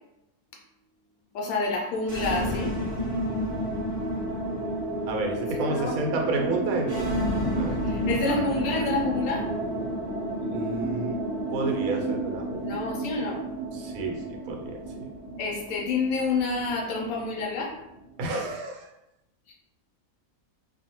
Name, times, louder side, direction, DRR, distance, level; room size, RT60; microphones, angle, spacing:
voice 1, 1.3-2.7 5.7-6.0 7.8-9.4 12.6-13.4 15.4-17.7, left 3 dB, 80° left, -1 dB, 1.0 m, -28 dB
sound 1, 2.0-18.1, right 1 dB, 50° right, 0.7 m, -31 dB
voice 2, 5.1-7.1 7.5-7.8 8.3-8.4 10.4-11.2 11.5-12.8 13.7-14.2 14.5-15.1 18.2-18.9, right 2 dB, 80° right, 1 dB, 1.0 m, -30 dB
2.6 x 2.1 x 2.8 m, 0.86 s
omnidirectional pair, 1.5 m